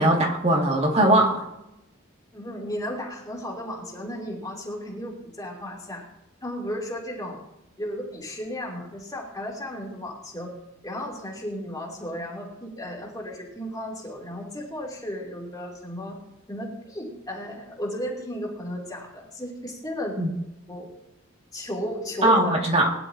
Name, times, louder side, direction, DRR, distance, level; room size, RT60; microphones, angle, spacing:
voice 1, 0.0-1.4 20.2-20.3 22.2-22.9, right 1 dB, 30° right, 0 dB, 2.4 m, -20 dB
voice 2, 2.3-6.0 6.4-7.4 7.8-10.5 10.8-16.2 16.5-20.2 20.7-20.9 21.5-22.5, equal, 20° left, -2 dB, 3.1 m, -34 dB
21.0 x 11.0 x 2.9 m, 0.91 s
head